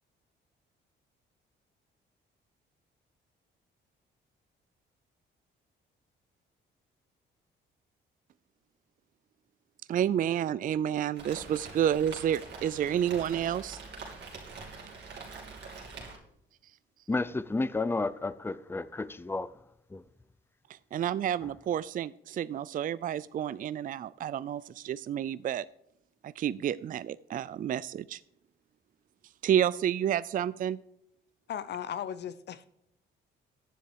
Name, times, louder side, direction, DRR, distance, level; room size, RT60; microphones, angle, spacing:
voice 1, 9.9-13.8 20.7-25.6 26.2-28.2 29.4-30.8, right 10 dB, 45° right, 0.4 m, -30 dB
Rain, 11.1-16.2, right 4 dB, 60° right, 3.3 m, -44 dB
voice 2, 17.1-20.0 21.4-21.5, left 3 dB, 10° left, 0.5 m, -32 dB
voice 3, 31.5-32.7, left 9 dB, 60° left, 0.6 m, -36 dB
10.5 x 7.2 x 4.6 m
cardioid pair, 90°, 20 cm